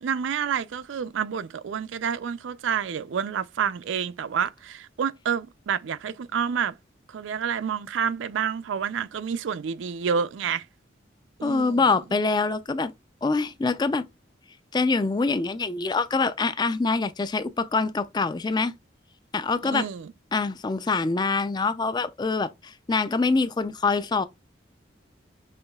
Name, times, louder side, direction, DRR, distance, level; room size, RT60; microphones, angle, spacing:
voice 1, 0.0-6.7 7.1-10.6 11.4-11.8 19.7-20.1, right 7 dB, 85° right, 0.4 m, -28 dB
voice 2, 11.4-12.9 13.2-14.0 14.7-18.7 19.3-19.9 20.3-24.3, left 4 dB, 20° left, 0.3 m, -25 dB
5.6 x 3.1 x 2.2 m
head